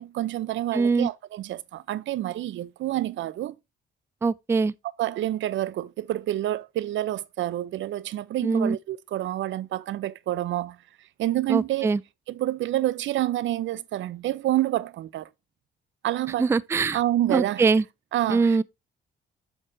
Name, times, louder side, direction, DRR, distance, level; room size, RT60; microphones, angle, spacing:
voice 1, 0.0-3.5 5.0-10.8 11.2-11.9 12.3-15.3 16.0-16.5 16.9-17.6 18.1-18.6, right 14 dB, 70° right, 0.6 m, -28 dB
voice 2, 0.7-1.1 4.2-4.7 8.4-8.8 11.5-12.0 16.4-17.0 17.3-17.8 18.3-18.6, right 4 dB, 15° right, 0.3 m, -22 dB
7.7 x 6.5 x 2.6 m
cardioid pair, 90°, 20 cm